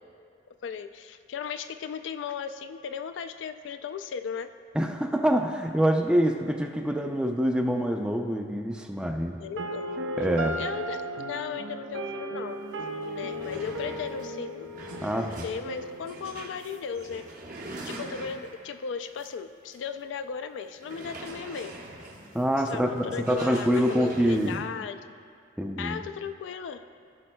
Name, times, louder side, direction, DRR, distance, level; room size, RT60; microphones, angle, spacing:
voice 1, 0.6-4.5 9.4-10.0 10.6-12.6 13.1-14.7 15.4-17.3 17.8-21.8 22.7-25.1 25.8-26.8, left 6 dB, 70° left, 9 dB, 0.3 m, -36 dB
voice 2, 4.7-9.4 10.2-10.6 15.0-15.5 22.3-24.6 25.6-26.0, equal, 5° right, 3 dB, 0.4 m, -26 dB
sound 1, 9.6-17.6, right 1 dB, 85° right, 0.6 m, -36 dB
sound 2, 12.6-12.7 13.0-18.7 19.2-19.3 19.7-19.8 20.8-24.6, right 2 dB, 45° right, 0.8 m, -44 dB
16.0 x 5.4 x 2.2 m, 2.3 s
head